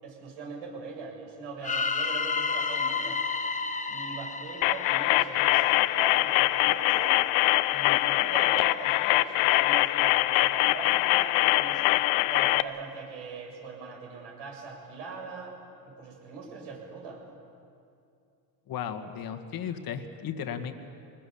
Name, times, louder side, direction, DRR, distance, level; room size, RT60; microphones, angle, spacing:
voice 1, 0.0-3.2 3.9-7.2 7.7-11.8 12.2-15.6 15.8-17.2, right 5 dB, 70° right, 0 dB, 7.6 m, -41 dB
sound 1, 1.6-5.7, left 4 dB, 15° left, 1.2 m, -31 dB
sound 2, 4.6-12.6, left 18 dB, 65° left, 0.8 m, -23 dB
voice 2, 18.7-20.7, left 8 dB, 45° left, 7 dB, 1.9 m, -35 dB
24.5 x 20.5 x 7.2 m, 2.5 s
hypercardioid pair, 80°, 49 cm